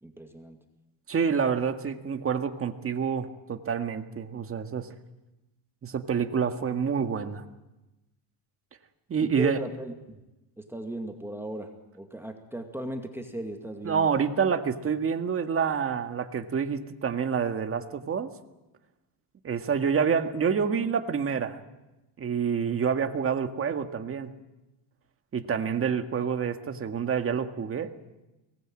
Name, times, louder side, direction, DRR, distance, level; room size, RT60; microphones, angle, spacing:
voice 1, 0.0-0.6 9.2-10.2 10.6-14.1, right 1 dB, 5° right, 4 dB, 2.2 m, -37 dB
voice 2, 1.1-4.9 5.8-7.4 9.1-9.6 13.8-18.3 19.4-21.6 22.2-24.3 25.3-27.9, right 6 dB, 30° right, 7 dB, 1.9 m, -27 dB
23.5 x 19.5 x 8.9 m, 1.0 s
cardioid pair, 120°, 46 cm